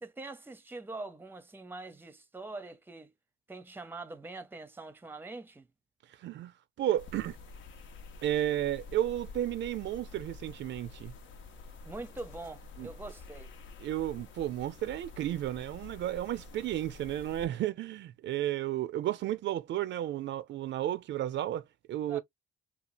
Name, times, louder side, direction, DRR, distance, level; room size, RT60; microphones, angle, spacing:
voice 1, 0.0-3.1 3.5-5.6 11.8-13.5 22.1-22.2, right 2 dB, 10° right, 0.6 m, -43 dB
voice 2, 6.2-6.5 6.8-7.4 8.2-11.1 12.8-12.9 13.8-22.2, right 12 dB, 70° right, 0.4 m, -33 dB
sound 1, 7.0-17.5, left 3 dB, 75° left, 0.7 m, -49 dB
2.8 x 2.3 x 2.5 m
cardioid pair, 90°, 20 cm